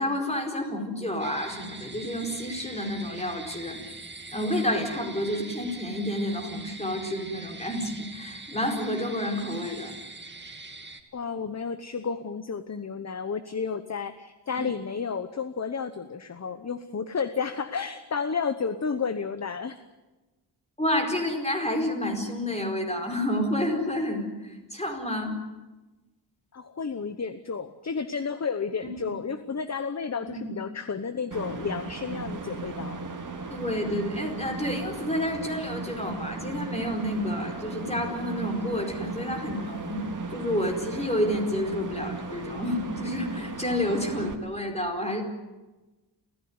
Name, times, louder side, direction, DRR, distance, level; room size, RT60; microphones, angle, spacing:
voice 1, 0.0-3.8 4.3-9.9 20.8-25.4 29.0-29.1 30.3-30.5 33.5-40.1 40.3-45.2, left 1 dB, 15° left, 3 dB, 4.7 m, -29 dB
sound 1, 1.2-11.0, right 3 dB, 25° right, 2.0 m, -43 dB
voice 2, 11.1-19.8 26.5-33.0, left 5 dB, 40° left, 11 dB, 1.0 m, -32 dB
sound 2, 31.3-44.4, right 3 dB, 45° right, 2.3 m, -37 dB
29.0 x 15.5 x 9.6 m, 1.1 s
wide cardioid pair, 145°, 42 cm